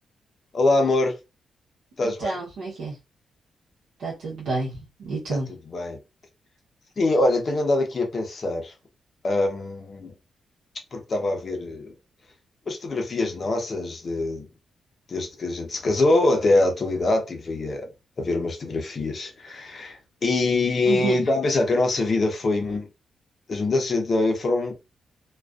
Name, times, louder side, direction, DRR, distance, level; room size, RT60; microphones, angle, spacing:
voice 1, 0.5-1.1 2.0-2.4 5.7-6.0 7.0-8.7 9.2-10.1 10.9-11.9 12.7-14.5 15.1-17.9 18.2-22.9 23.5-24.7, left 2 dB, 40° left, 0.7 m, -24 dB
voice 2, 2.0-3.0 4.0-5.5 20.8-21.2, right 3 dB, 80° right, 0.8 m, -29 dB
2.4 x 2.3 x 2.3 m
cardioid pair, 115°, 0 cm